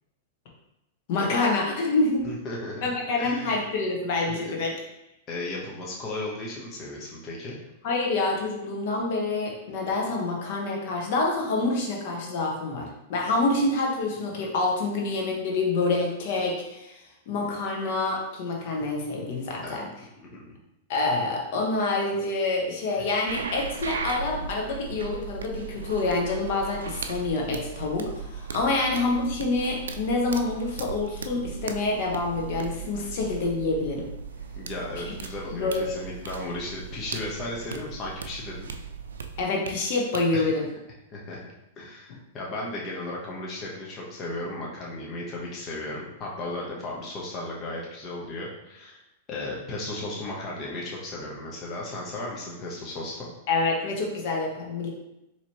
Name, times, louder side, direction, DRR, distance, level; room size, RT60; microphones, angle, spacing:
voice 1, 1.1-2.3 2.8-4.7 7.8-17.0 17.3-19.9 20.9-34.1 35.5-36.0 39.4-40.7 53.5-54.9, left 3 dB, 60° left, -1 dB, 1.0 m, -27 dB
voice 2, 2.2-2.8 3.2-3.6 4.3-4.6 5.3-7.6 19.6-19.8 20.2-20.6 22.9-23.1 28.7-28.8 34.6-38.7 40.3-40.5 41.1-41.4 41.8-49.0 49.3-53.3, left 2 dB, 35° left, -3 dB, 0.9 m, -35 dB
sound 1, 23.3-39.7 40.1-40.2, right 5 dB, 85° right, 0.3 m, -37 dB
4.3 x 2.9 x 2.9 m, 0.88 s
hypercardioid pair, 115°, 0 cm